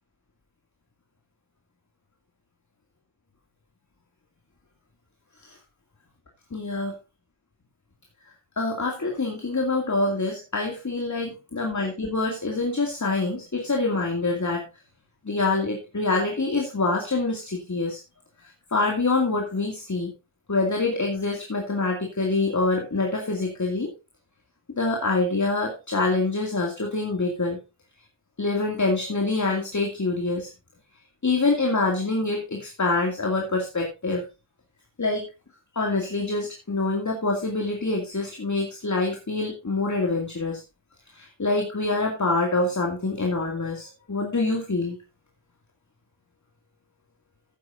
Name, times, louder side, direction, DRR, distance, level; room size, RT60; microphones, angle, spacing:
voice 1, 6.5-7.0 8.6-14.6 15.2-18.0 18.4-20.1 20.5-23.9 24.8-27.6 28.4-30.5 31.2-34.2 35.0-35.3 35.7-40.6 41.1-45.0, left 3 dB, 35° left, 1 dB, 2.4 m, -25 dB
13.5 x 9.4 x 2.6 m, 0.27 s
wide cardioid pair, 85°, 49 cm